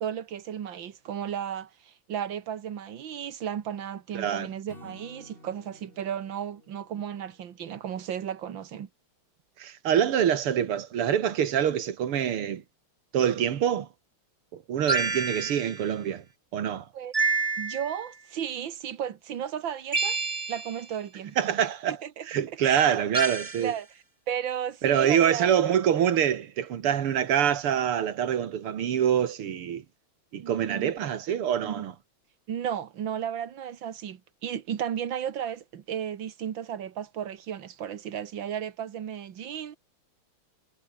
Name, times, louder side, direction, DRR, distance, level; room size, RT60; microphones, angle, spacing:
voice 1, 0.0-8.9 16.9-17.1 17.6-20.2 20.5-22.3 22.6-22.9 23.6-23.9 24.3-25.5 30.4-31.1 31.6-31.9 32.5-39.8, right 9 dB, 65° right, 2.1 m, -34 dB
voice 2, 4.1-4.5 9.6-12.6 13.1-13.9 14.5-16.2 16.5-16.9 21.4-22.0 22.3-23.7 24.8-29.8 30.3-31.9, right 9 dB, 85° right, 2.5 m, -25 dB
Acoustic guitar / Strum, 4.7-8.0, left 2 dB, 25° left, 5.4 m, -53 dB
sound 1, 14.9-15.8 17.1-18.1 19.9-20.8 23.1-23.7, right 3 dB, 25° right, 0.9 m, -28 dB
omnidirectional pair, 2.4 m